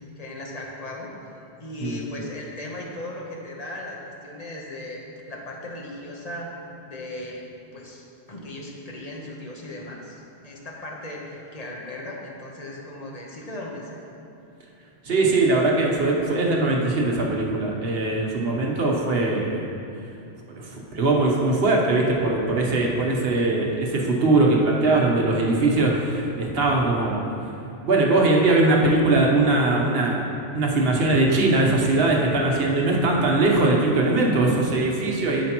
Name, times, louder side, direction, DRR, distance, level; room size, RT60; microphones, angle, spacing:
voice 1, 0.2-1.1 1.6-5.0 5.3-8.0 8.3-14.0 20.6-20.7, left 1 dB, 40° left, -2 dB, 1.0 m, -37 dB
voice 2, 15.0-19.6 20.6-27.2 27.8-30.3 30.5-35.5, right 2 dB, 65° right, -1 dB, 1.2 m, -21 dB
12.5 x 5.1 x 3.0 m, 2.6 s
omnidirectional pair, 1.1 m